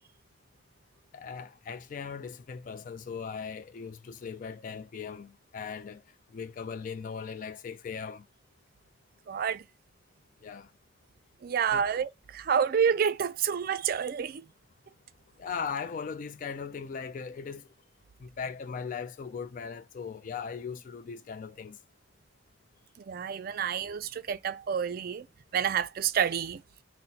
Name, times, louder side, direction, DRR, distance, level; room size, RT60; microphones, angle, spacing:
voice 1, 1.1-6.0 6.3-8.2 10.4-10.7 11.7-11.9 15.4-17.7 18.2-21.8, left 6 dB, 45° left, 0.3 m, -38 dB
voice 2, 9.3-9.6 11.4-14.4 23.0-25.3 25.5-26.6, right 7 dB, 50° right, 0.3 m, -29 dB
4.0 x 2.1 x 4.0 m
head